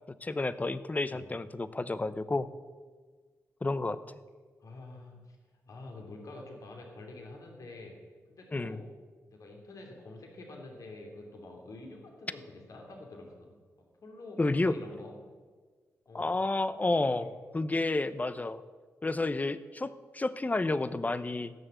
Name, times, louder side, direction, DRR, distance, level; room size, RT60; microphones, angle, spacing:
voice 1, 0.2-2.5 3.6-4.0 8.5-8.8 14.4-14.8 16.1-18.6 19.0-21.5, left 2 dB, 25° left, 15 dB, 0.8 m, -30 dB
voice 2, 4.6-5.4 5.7-7.9 8.3-8.9 9.3-13.6 14.0-15.2 16.1-16.4 17.2-17.3, left 2 dB, 60° left, 1 dB, 2.8 m, -47 dB
15.5 x 6.7 x 7.6 m, 1.5 s
supercardioid pair, 55°, 6 cm